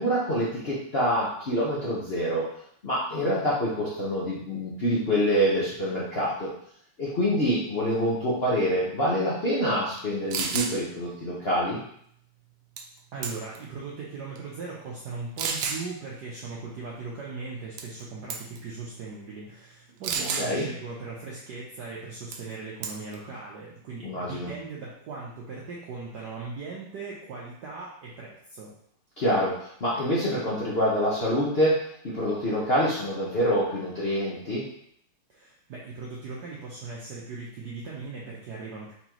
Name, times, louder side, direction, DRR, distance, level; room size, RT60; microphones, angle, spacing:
voice 1, 0.0-2.5 2.8-6.5 7.0-11.8 20.2-20.7 24.0-24.5 29.2-31.8 32.0-34.6, equal, 70° left, -7 dB, 0.5 m, -26 dB
sound 1, 10.0-10.1 10.3-10.7 12.8-13.0 13.2-13.7 14.4-14.5 15.4-15.8 17.8-18.0 18.3-18.6 20.0-20.5 22.3-22.5 22.8-23.2, right 6 dB, 90° right, 1.6 m, -30 dB
voice 2, 13.1-28.7 35.3-38.9, right 4 dB, 65° right, -5 dB, 1.1 m, -39 dB
4.3 x 3.9 x 2.9 m, 0.68 s
omnidirectional pair, 2.4 m